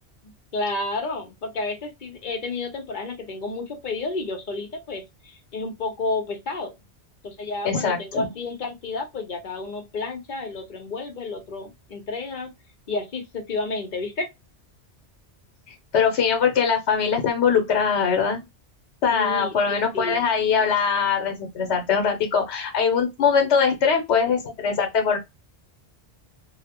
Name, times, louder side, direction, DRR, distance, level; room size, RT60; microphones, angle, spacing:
voice 1, 0.2-6.7 7.2-12.5 12.9-14.3 19.1-20.3, left 3 dB, 50° left, 0.8 m, -31 dB
voice 2, 7.6-8.3 15.9-18.4 19.0-25.2, left 6 dB, 85° left, 1.0 m, -22 dB
2.8 x 2.0 x 2.8 m
omnidirectional pair, 1.1 m